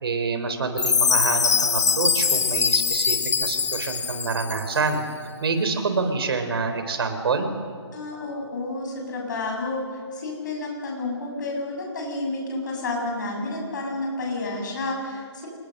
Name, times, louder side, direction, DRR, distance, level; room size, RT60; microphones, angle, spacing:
voice 1, 0.0-5.1 5.4-7.5, right 4 dB, 55° right, 7 dB, 4.0 m, -26 dB
Chime, 0.8-4.8, left 6 dB, 75° left, 1.0 m, -22 dB
voice 2, 7.9-15.5, left 2 dB, 40° left, 0 dB, 7.3 m, -30 dB
28.0 x 20.0 x 6.7 m, 2.1 s
hypercardioid pair, 170°, 15 cm